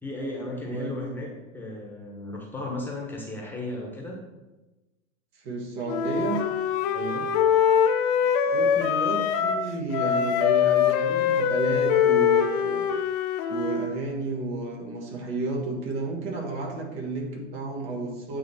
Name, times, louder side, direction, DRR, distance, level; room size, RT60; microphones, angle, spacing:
voice 1, 0.0-1.3 1.5-4.2 6.9-7.3, left 2 dB, 5° left, -2 dB, 1.2 m, -35 dB
voice 2, 0.6-0.9 5.3-6.4 8.4-12.8 13.5-18.4, right 3 dB, 50° right, 0 dB, 1.8 m, -32 dB
Wind instrument woodwind instrument, 5.8-9.7 9.9-13.9, left 8 dB, 40° left, 0.7 m, -23 dB
8.9 x 3.2 x 4.3 m, 1.1 s
hypercardioid pair, 100°, 38 cm